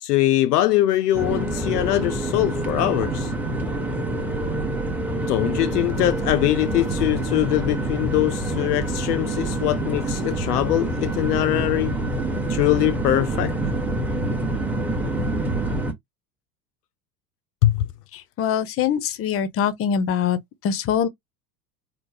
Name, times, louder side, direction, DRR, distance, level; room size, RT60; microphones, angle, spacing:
voice 1, 0.0-3.3 5.3-12.0 12.5-13.6 17.6-17.9, left 15 dB, 70° left, 0.5 m, -22 dB
sound 1, 1.1-15.9, right 2 dB, 5° right, 0.9 m, -26 dB
voice 2, 18.1-21.1, left 8 dB, 30° left, 0.7 m, -23 dB
4.2 x 2.1 x 3.3 m
figure-of-eight pair, 75°, 50 cm